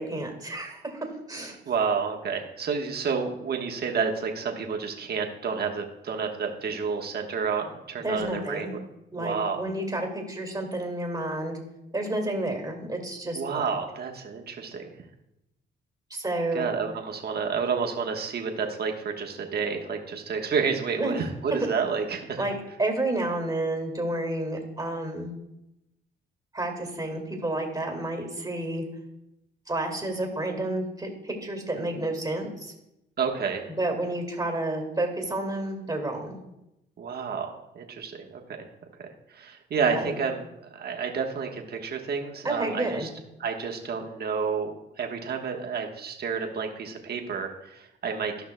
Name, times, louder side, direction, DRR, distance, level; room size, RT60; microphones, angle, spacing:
voice 1, 0.0-1.6 8.0-8.7 9.1-11.6 11.9-13.7 16.1-16.7 21.0-21.1 22.4-25.3 26.5-28.8 29.7-32.7 33.7-36.4 39.9-40.1 42.4-43.1, right 1 dB, 20° right, 2 dB, 2.0 m, -30 dB
voice 2, 1.7-8.8 9.1-9.6 13.3-14.9 16.5-22.4 33.2-33.7 37.0-38.4 39.3-43.1 43.4-44.7 45.0-48.4, right 5 dB, 55° right, 2 dB, 1.2 m, -30 dB
14.5 x 5.7 x 2.2 m, 0.88 s
cardioid pair, 90°, 20 cm